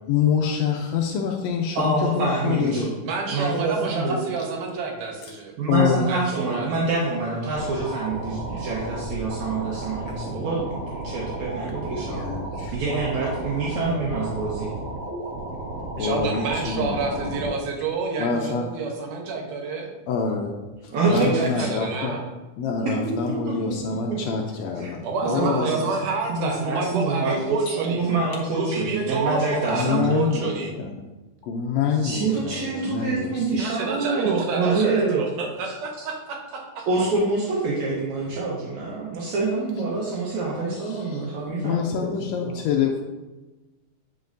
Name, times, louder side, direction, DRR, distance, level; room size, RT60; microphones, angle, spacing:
voice 1, 0.1-2.9 5.7-6.1 10.1-10.2 12.1-12.7 16.0-17.4 18.2-18.7 20.1-20.6 20.8-22.2 22.6-25.0 25.3-25.9 29.7-30.9 31.4-33.6 40.8-41.3 41.6-43.0, left 6 dB, 80° left, 1 dB, 1.5 m, -26 dB
voice 2, 1.8-2.9 3.3-4.2 5.6-12.3 12.7-14.7 20.9-21.7 23.2-23.6 24.1-24.2 24.8-24.9 25.2-25.7 26.0-30.1 32.0-35.2 36.9-42.1 42.4-42.5, right 3 dB, 70° right, -4 dB, 2.2 m, -26 dB
voice 3, 3.0-5.5 6.1-6.7 16.0-19.9 21.1-22.2 25.0-28.0 28.5-30.7 33.6-36.8, right 4 dB, 90° right, 1 dB, 2.6 m, -29 dB
sound 1, 7.5-17.5, right 2 dB, 50° right, 2.6 m, -33 dB
9.5 x 5.1 x 2.6 m, 1.1 s
omnidirectional pair, 3.5 m